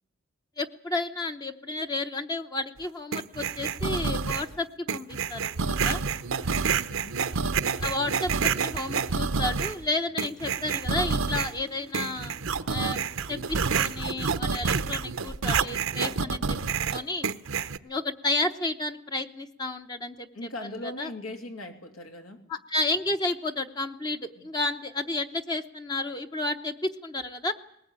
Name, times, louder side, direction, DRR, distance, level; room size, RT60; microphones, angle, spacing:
voice 1, 0.6-6.0 7.8-13.4 13.7-16.6 16.9-17.3 17.8-20.3 21.0-21.1 22.5-27.5, left 2 dB, 20° left, 6 dB, 0.8 m, -31 dB
sound 1, 3.1-4.5 4.9-9.8 10.2-11.6 11.9-17.8, right 5 dB, 80° right, 0.8 m, -28 dB
voice 2, 6.6-7.2 20.3-22.4 24.4-24.5, left 1 dB, 85° left, 4 dB, 3.1 m, -40 dB
sound 2, 8.7-14.3, left 2 dB, 70° left, 3.0 m, -55 dB
20.5 x 19.0 x 8.9 m, 0.79 s
head